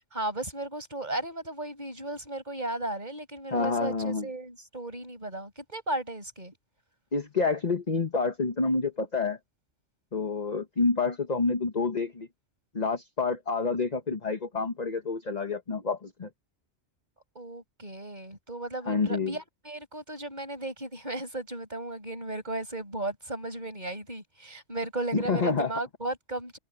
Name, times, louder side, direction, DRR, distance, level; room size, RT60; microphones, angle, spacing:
voice 1, 0.0-6.5 17.4-26.6, right 2 dB, 40° right, 7.2 m, -35 dB
voice 2, 3.5-4.3 7.1-9.4 10.1-12.3 12.7-16.3 18.9-19.4 25.1-25.7, left 4 dB, 35° left, 1.4 m, -28 dB
omnidirectional pair, 1.2 m